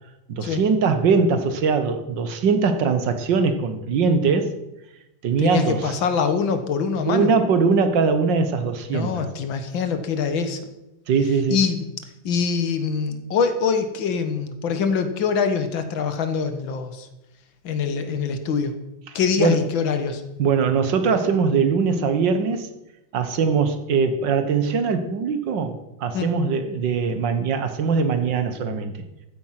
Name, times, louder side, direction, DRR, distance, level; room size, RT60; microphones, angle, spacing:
voice 1, 0.3-4.5 5.2-5.9 7.0-9.3 11.1-11.6 19.1-19.6 20.4-22.7 23.1-29.0, right 5 dB, 70° right, 10 dB, 1.8 m, -21 dB
voice 2, 5.4-7.3 8.9-10.6 11.5-11.9 12.3-17.1 17.6-18.7 19.1-20.2 26.1-26.3, left 6 dB, 80° left, 9 dB, 2.0 m, -24 dB
14.0 x 9.1 x 5.7 m, 0.93 s
omnidirectional pair, 2.1 m